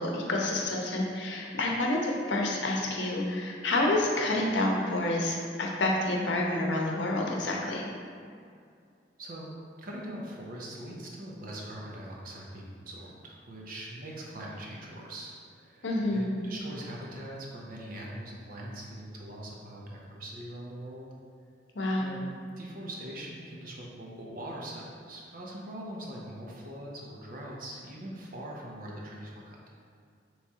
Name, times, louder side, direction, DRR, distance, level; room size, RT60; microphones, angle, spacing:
voice 1, 0.0-7.8 15.8-16.3 21.7-22.1, left 2 dB, 85° left, -1 dB, 0.7 m, -28 dB
voice 2, 9.2-9.5 9.8-21.1 22.0-22.2 22.6-29.7, right 1 dB, 55° right, -3 dB, 0.7 m, -42 dB
3.5 x 3.2 x 4.1 m, 2.3 s
head